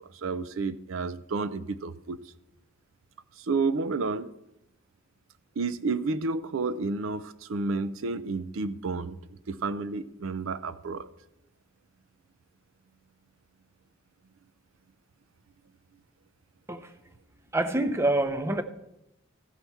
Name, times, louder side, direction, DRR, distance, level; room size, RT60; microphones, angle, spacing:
voice 1, 0.0-2.2 3.4-4.3 5.6-11.1, right 3 dB, 75° right, 0.5 m, -31 dB
voice 2, 17.5-18.6, right 1 dB, 10° right, 0.5 m, -26 dB
14.5 x 5.6 x 4.5 m
head